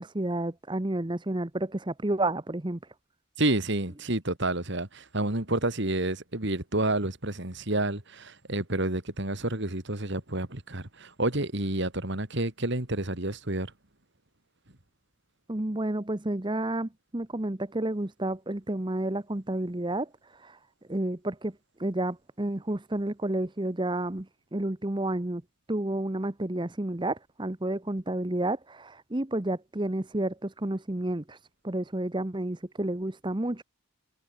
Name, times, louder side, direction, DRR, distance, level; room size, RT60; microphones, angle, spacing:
voice 1, 0.0-2.8 15.5-20.6 20.9-25.4 25.7-31.4 31.6-33.6, right 1 dB, 20° right, 0.9 m, -31 dB
voice 2, 3.4-13.7, right 2 dB, 55° right, 2.6 m, -29 dB
head